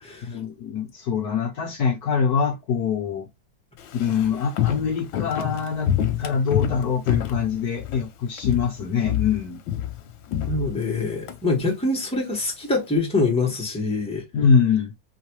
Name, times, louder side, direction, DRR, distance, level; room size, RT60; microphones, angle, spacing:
voice 1, 0.2-3.3 3.9-5.9 6.2-9.6 14.3-14.9, left 6 dB, 60° left, 1.3 m, -24 dB
Walk footsteps, 3.8-8.1 8.4-8.8 9.0-11.4 11.7-11.8, left 11 dB, 85° left, 1.5 m, -27 dB
voice 2, 10.5-14.2, left 3 dB, 5° left, 1.5 m, -24 dB
4.6 x 3.2 x 3.2 m
omnidirectional pair, 2.0 m